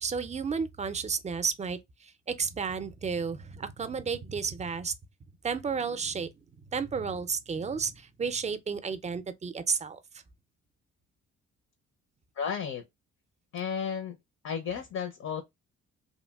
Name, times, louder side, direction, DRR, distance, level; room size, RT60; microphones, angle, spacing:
voice 1, 0.0-4.9 5.4-6.3 6.7-10.0, right 5 dB, 25° right, 0.4 m, -32 dB
voice 2, 12.4-12.8 13.5-14.2 14.4-15.4, left 7 dB, 60° left, 0.6 m, -33 dB
3.0 x 2.5 x 2.3 m
cardioid pair, 90°, 30 cm